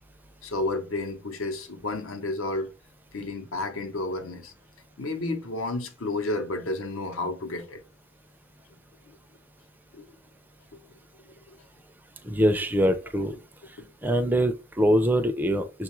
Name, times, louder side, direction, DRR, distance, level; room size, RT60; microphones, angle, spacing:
voice 1, 0.4-2.7 3.1-4.5 5.0-7.8 9.1-9.2 9.9-10.1 10.7-10.8 11.5-11.6 13.8-13.9 14.2-14.3, left 2 dB, 80° left, 0.8 m, -31 dB
voice 2, 12.2-13.3 13.7-13.8 14.0-15.8, equal, 10° right, 0.4 m, -23 dB
6.4 x 2.3 x 3.0 m
head